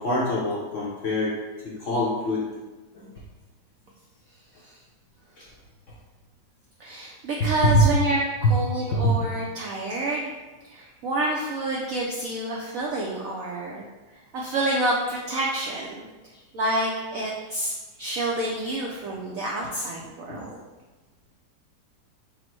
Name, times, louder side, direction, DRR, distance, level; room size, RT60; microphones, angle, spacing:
voice 1, 0.0-1.4 1.6-2.5 2.9-3.1 5.4-5.5 7.4-7.8 8.4-8.5 8.9-9.2 20.3-20.4, left 1 dB, 60° left, -5 dB, 0.8 m, -24 dB
voice 2, 6.8-10.3 10.7-13.9 14.3-16.1 16.5-20.6, right 2 dB, 75° right, -3 dB, 0.7 m, -28 dB
5.0 x 2.1 x 4.4 m, 1.2 s
omnidirectional pair, 2.0 m